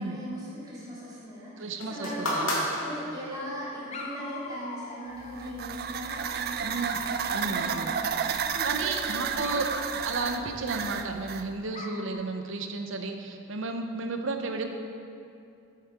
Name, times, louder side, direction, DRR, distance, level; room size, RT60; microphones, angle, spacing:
voice 1, 0.0-1.5 1.9-10.5, equal, 20° right, -8 dB, 2.1 m, -39 dB
voice 2, 1.6-2.7 6.6-6.9 7.3-7.9 8.6-9.7 10.1-14.6, right 3 dB, 65° right, 5 dB, 0.7 m, -33 dB
sound 1, 1.8-3.6 4.5-4.6, equal, 85° left, 1.7 m, -31 dB
Dog, 2.4-3.2 3.9-5.6 6.4-8.5 9.4-11.3 11.7-12.1, left 3 dB, 30° left, 0.6 m, -43 dB
sound 2, 5.2-11.5, right 7 dB, 45° right, 0.3 m, -32 dB
8.3 x 6.6 x 4.8 m, 2.5 s
head